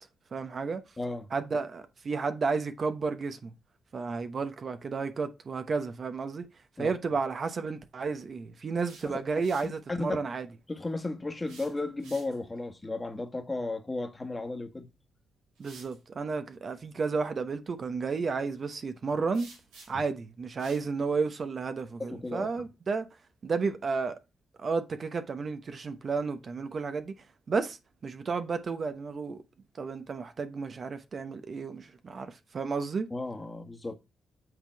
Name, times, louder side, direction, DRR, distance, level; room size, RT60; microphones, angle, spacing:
voice 1, 0.3-0.8 1.3-3.5 3.9-6.5 6.8-10.5 15.6-19.5 19.9-23.1 23.4-24.1 24.6-27.1 27.5-27.8 28.0-29.4 29.8-33.1, right 4 dB, 55° right, 0.9 m, -32 dB
voice 2, 1.0-1.3 6.8-6.9 9.0-9.1 9.6-10.2 10.7-14.9 19.9-20.0 22.1-22.5 33.1-34.0, left 2 dB, 25° left, 1.4 m, -34 dB
sound 1, 8.8-9.8 11.4-12.6 14.6-14.8 15.5-16.0 19.3-20.1 20.6-20.9, right 4 dB, 90° right, 2.5 m, -52 dB
7.9 x 3.8 x 4.6 m
supercardioid pair, 50°, 0 cm